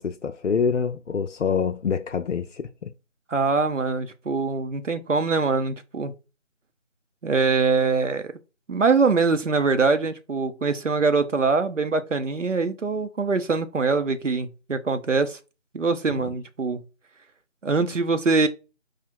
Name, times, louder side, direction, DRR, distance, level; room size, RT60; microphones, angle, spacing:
voice 1, 0.0-2.9 16.1-16.3, left 6 dB, 80° left, 0.5 m, -26 dB
voice 2, 3.3-6.1 7.2-8.3 8.7-15.4 15.7-16.8 17.6-18.5, right 4 dB, 85° right, 0.8 m, -23 dB
5.0 x 2.4 x 4.4 m
figure-of-eight pair, 170°, 36 cm